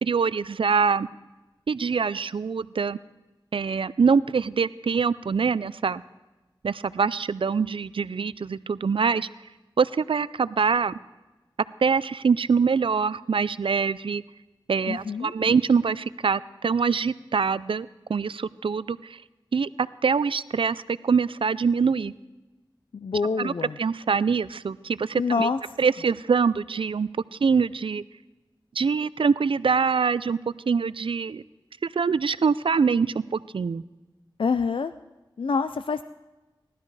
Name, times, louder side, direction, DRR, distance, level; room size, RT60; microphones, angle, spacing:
voice 1, 0.0-1.1 1.7-3.0 3.5-6.0 6.6-9.3 9.8-10.9 11.8-14.2 14.7-19.2 19.5-22.1 23.4-23.5 23.8-25.5 25.8-28.0 28.8-30.4 30.7-31.4 31.8-33.8, right 5 dB, 85° right, 18 dB, 0.4 m, -24 dB
voice 2, 14.9-15.3 22.9-23.8 25.2-25.6 34.4-34.9 35.4-36.0, left 5 dB, 85° left, 11 dB, 0.4 m, -26 dB
17.5 x 12.5 x 4.8 m, 1.1 s
wide cardioid pair, 50°, 9 cm